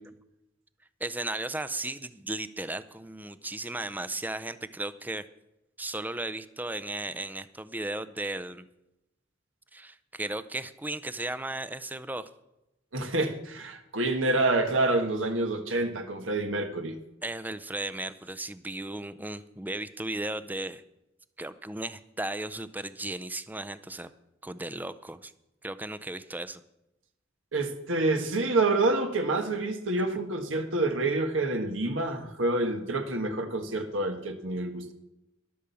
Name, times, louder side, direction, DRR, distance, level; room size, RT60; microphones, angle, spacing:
voice 1, 1.0-5.2 5.8-8.7 9.7-12.3 17.2-20.8 21.4-24.1 24.4-25.3 25.6-26.6, right 2 dB, 10° right, 13 dB, 0.5 m, -35 dB
voice 2, 12.9-17.0 27.5-34.9, right 2 dB, 80° right, 5 dB, 1.5 m, -27 dB
12.0 x 8.5 x 7.0 m, 0.91 s
head